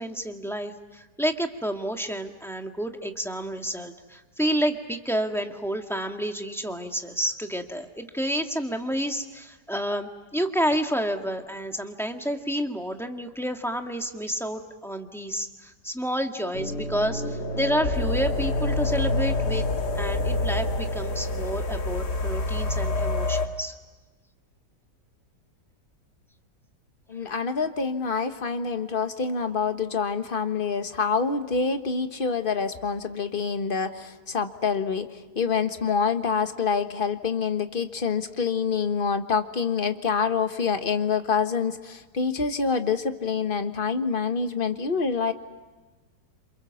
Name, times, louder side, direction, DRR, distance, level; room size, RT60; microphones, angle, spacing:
voice 1, 0.0-19.7 19.9-23.7 27.3-27.4, equal, ahead, 4 dB, 1.6 m, -30 dB
sound 1, 16.5-23.5, left 2 dB, 65° left, 2.2 m, -27 dB
voice 2, 27.1-45.3, left 5 dB, 30° left, 7 dB, 1.4 m, -26 dB
28.0 x 27.5 x 7.2 m, 1.2 s
omnidirectional pair, 1.9 m